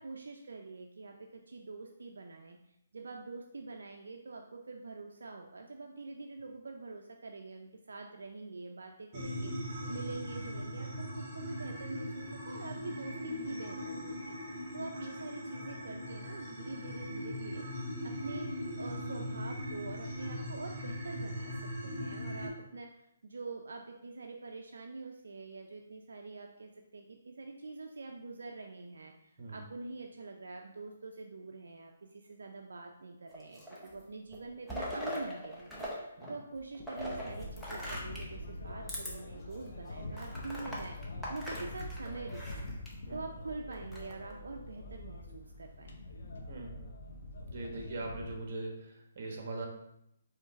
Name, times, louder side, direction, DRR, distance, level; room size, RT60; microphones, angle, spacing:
voice 1, 0.0-2.6 2.9-17.6 18.0-18.5 18.8-42.7 43.1-46.0, right 3 dB, 80° right, 3 dB, 0.4 m, -45 dB
sound 1, 9.1-22.5, equal, 20° right, 1.7 m, -40 dB
sound 2, 33.3-34.0 34.3-35.9 36.2-38.3 38.8-39.1 39.6-39.7 40.1-42.9 43.7-44.3, equal, ahead, 0.8 m, -41 dB
sound 3, 37.0-48.4, left 1 dB, 65° left, 0.7 m, -44 dB
voice 2, 46.5-46.8 47.5-49.7, right 2 dB, 45° right, 1 dB, 1.2 m, -41 dB
4.3 x 3.2 x 3.5 m, 0.80 s
hypercardioid pair, 155°, 0 cm